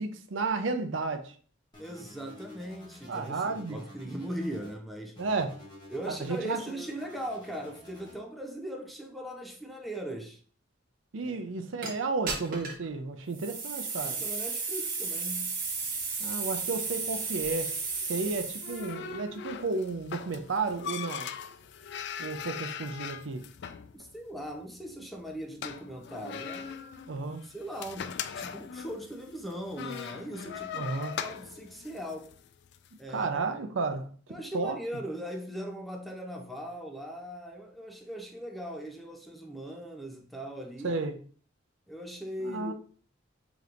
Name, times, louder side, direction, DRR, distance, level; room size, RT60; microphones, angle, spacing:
voice 1, 0.0-1.3 3.1-3.8 5.2-5.5 6.1-6.6 11.1-14.2 16.2-17.7 18.1-21.3 22.2-23.4 27.1-27.4 30.8-31.2 33.1-34.1 34.5-34.8 40.8-41.2 42.4-42.7, right 3 dB, 85° right, 0.5 m, -32 dB
sound 1, 1.7-4.7 5.1-8.2, left 1 dB, 25° left, 1.5 m, -50 dB
voice 2, 1.8-5.2 5.9-10.4 11.2-11.7 14.0-15.6 23.9-26.8 27.4-32.3 33.0-33.4 34.3-41.1 41.9-42.7, equal, ahead, 0.6 m, -39 dB
sound 2, 11.8-11.9 12.3-12.8 13.3-18.9, right 4 dB, 50° right, 1.0 m, -34 dB
sound 3, 15.6-32.9, left 7 dB, 65° left, 0.3 m, -41 dB
5.0 x 3.0 x 2.5 m
head